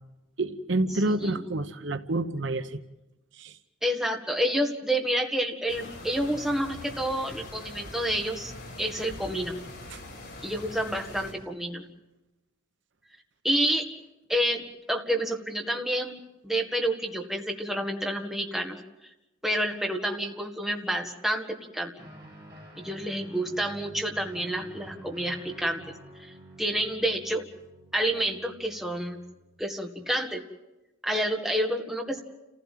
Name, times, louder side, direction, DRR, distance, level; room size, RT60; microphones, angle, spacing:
voice 1, 0.4-2.8 3.4-3.6 9.9-10.0, right 2 dB, 65° right, 10 dB, 1.0 m, -28 dB
voice 2, 1.1-1.4 3.8-8.5 8.8-9.5 10.4-11.8 13.4-13.8 14.3-14.6 14.9-18.8 19.4-21.9 22.8-25.8 26.2-26.3 26.6-27.4 27.9-29.2 29.6-30.4 31.0-32.2, right 1 dB, ahead, 2 dB, 1.9 m, -29 dB
sound 1, 5.7-11.3, left 2 dB, 55° left, 6.1 m, -43 dB
Guitar, 22.0-29.6, right 1 dB, 20° right, 6.5 m, -49 dB
29.0 x 15.5 x 7.6 m, 1.0 s
head